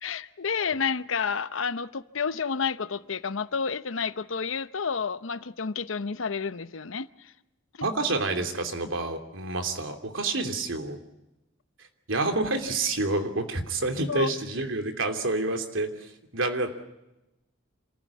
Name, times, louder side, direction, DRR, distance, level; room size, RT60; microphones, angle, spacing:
voice 1, 0.0-7.3 7.8-8.0 14.1-14.3, left 5 dB, 85° left, 14 dB, 0.8 m, -30 dB
voice 2, 7.8-11.0 12.1-16.8, right 2 dB, 80° right, 6 dB, 2.9 m, -28 dB
27.0 x 15.5 x 8.6 m, 0.94 s
head